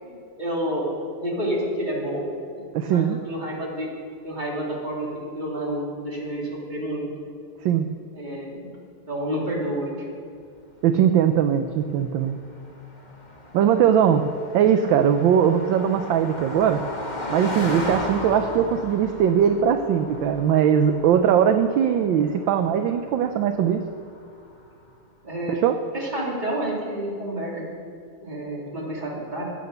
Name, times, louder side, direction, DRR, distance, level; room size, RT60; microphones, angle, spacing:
voice 1, 0.0-0.9 1.2-2.2 2.6-3.9 4.2-7.1 8.1-8.8 9.1-9.9 25.2-25.6 25.9-27.7 28.2-29.5, right 1 dB, 20° right, -4 dB, 3.0 m, -29 dB
voice 2, 2.7-3.2 7.6-7.9 10.8-12.4 13.5-14.2 14.5-16.8 17.3-23.8 25.5-25.7, right 8 dB, 70° right, 8 dB, 1.3 m, -20 dB
Car passing by, 11.0-24.8, left 1 dB, 20° left, 2.0 m, -37 dB
16.5 x 8.7 x 6.8 m, 2.3 s
omnidirectional pair, 2.4 m